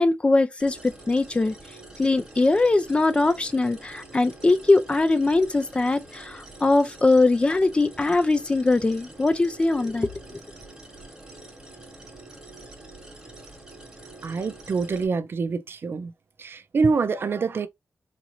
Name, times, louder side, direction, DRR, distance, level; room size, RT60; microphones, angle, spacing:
voice 1, 0.0-1.5 2.0-10.4, left 2 dB, 20° left, 0.4 m, -21 dB
sound 1, 0.6-15.1, right 2 dB, 15° right, 1.1 m, -46 dB
voice 2, 14.2-16.1 16.4-17.7, right 4 dB, 50° right, 0.4 m, -25 dB
4.1 x 2.5 x 2.9 m
wide cardioid pair, 155°, 5 cm